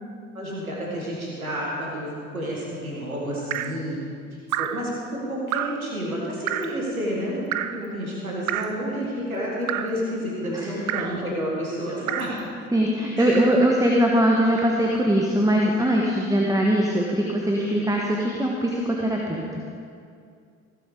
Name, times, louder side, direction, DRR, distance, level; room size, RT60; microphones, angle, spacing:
voice 1, 0.3-4.0 4.6-12.4 13.2-13.4, equal, 90° right, -4 dB, 1.7 m, -30 dB
Drip, 3.5-3.8 4.5-4.9 5.5-5.9 6.5-6.8 7.5-7.9 8.5-8.8 9.7-10.0 10.9-11.2 12.1-12.4 13.3-13.7 14.6-14.8, right 11 dB, 45° right, 0.6 m, -29 dB
voice 2, 12.7-19.6, equal, 10° right, -1 dB, 1.4 m, -21 dB
16.0 x 7.9 x 5.0 m, 2.3 s
figure-of-eight pair, 45°, 41 cm